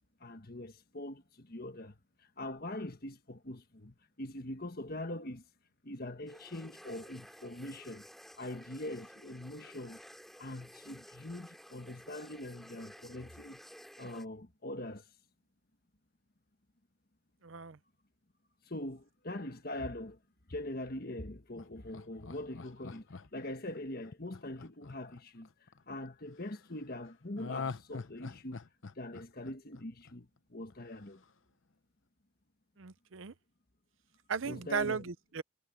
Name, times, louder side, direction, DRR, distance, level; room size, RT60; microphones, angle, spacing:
voice 1, 0.2-1.9 2.4-5.4 5.8-8.0 8.4-10.0 10.4-13.6 14.0-15.0 18.7-20.2 20.5-23.1 23.3-25.5 25.9-28.6 29.0-31.2 34.4-35.0, left 1 dB, 45° left, 1.5 m, -42 dB
sound 1, 6.3-14.3, equal, ahead, 7.2 m, -54 dB
voice 2, 17.4-17.8 32.8-33.3 34.3-35.4, right 6 dB, 75° right, 0.7 m, -36 dB
Laughter, 21.6-25.8 27.4-30.4 30.7-30.8, left 5 dB, 70° left, 0.8 m, -44 dB
head